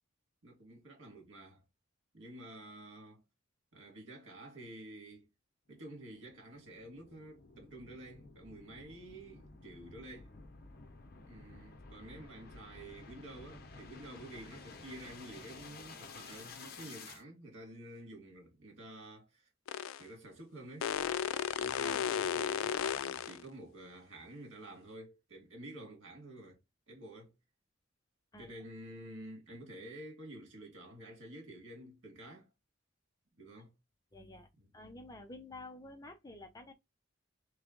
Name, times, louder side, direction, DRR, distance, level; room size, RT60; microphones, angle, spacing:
voice 1, 0.4-1.6 2.1-3.2 3.7-5.3 5.7-10.3 11.2-19.5 20.0-20.9 21.6-26.6 26.9-27.3 28.4-32.5 33.4-33.7 34.6-34.7, right 1 dB, 70° right, 2.0 m, -50 dB
sound 1, 5.7-17.2, left 4 dB, 50° left, 0.9 m, -53 dB
sound 2, 19.7-20.0 20.8-23.4, left 8 dB, 75° left, 0.3 m, -34 dB
voice 2, 34.1-34.5 34.7-36.7, left 2 dB, 20° left, 0.6 m, -50 dB
3.4 x 3.2 x 3.8 m
head